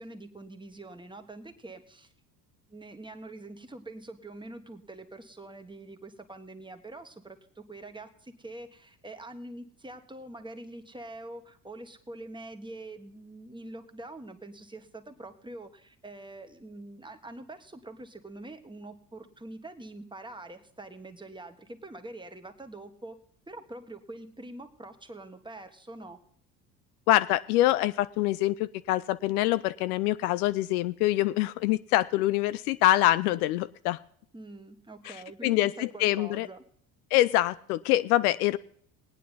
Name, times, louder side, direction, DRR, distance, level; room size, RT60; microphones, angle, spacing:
voice 1, 0.0-2.1 2.7-23.2 23.5-26.2 34.3-36.6, right 2 dB, 10° right, 7 dB, 1.4 m, -45 dB
voice 2, 27.1-34.0 35.1-35.2 35.4-36.5 37.1-38.6, left 16 dB, 65° left, 15 dB, 0.6 m, -25 dB
19.0 x 9.2 x 4.1 m, 0.63 s
hypercardioid pair, 65°, 47 cm